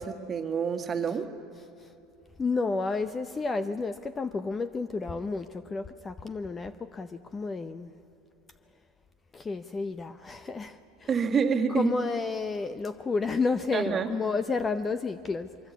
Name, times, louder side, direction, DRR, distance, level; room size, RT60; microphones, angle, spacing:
voice 1, 0.0-1.3 11.1-11.9 13.7-14.1, right 6 dB, 25° right, 6 dB, 1.8 m, -27 dB
voice 2, 2.4-7.9 9.3-11.1 11.7-15.5, left 4 dB, 20° left, 12 dB, 0.7 m, -31 dB
24.0 x 23.5 x 8.4 m, 2.9 s
supercardioid pair, 140°, 0 cm